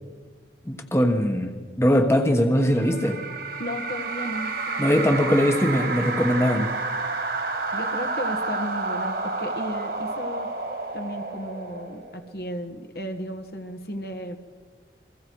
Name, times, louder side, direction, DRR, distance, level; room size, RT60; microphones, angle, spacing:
voice 1, 0.6-3.2 4.8-6.7, equal, 15° left, 5 dB, 1.3 m, -21 dB
sound 1, 2.6-12.3, right 3 dB, 60° right, 2.4 m, -30 dB
voice 2, 3.6-5.3 7.7-10.5 10.9-14.4, equal, 60° left, 6 dB, 1.6 m, -34 dB
29.5 x 22.5 x 4.8 m, 1.5 s
head